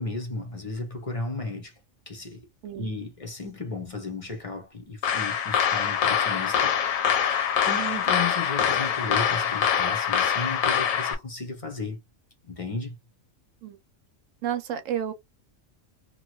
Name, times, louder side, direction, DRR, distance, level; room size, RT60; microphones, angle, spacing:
voice 1, 0.0-1.7 2.1-2.4 2.8-7.0 7.2-12.0 12.4-12.9, left 3 dB, 35° left, 0.6 m, -34 dB
sound 1, 5.0-11.1, left 8 dB, 80° left, 1.1 m, -24 dB
voice 2, 14.4-15.1, right 9 dB, 75° right, 1.0 m, -31 dB
2.8 x 2.3 x 2.9 m
omnidirectional pair, 1.4 m